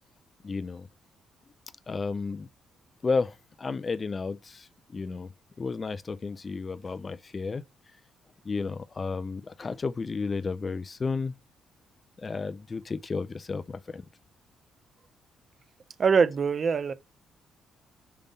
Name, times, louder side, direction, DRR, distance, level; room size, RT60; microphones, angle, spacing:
voice 1, 0.4-0.9 1.9-2.5 3.0-5.3 5.6-7.6 8.4-11.3 12.2-14.0, left 4 dB, 35° left, 0.4 m, -32 dB
voice 2, 16.0-16.9, right 5 dB, 45° right, 0.6 m, -23 dB
5.7 x 3.5 x 5.1 m
cardioid pair, 90°, 0 cm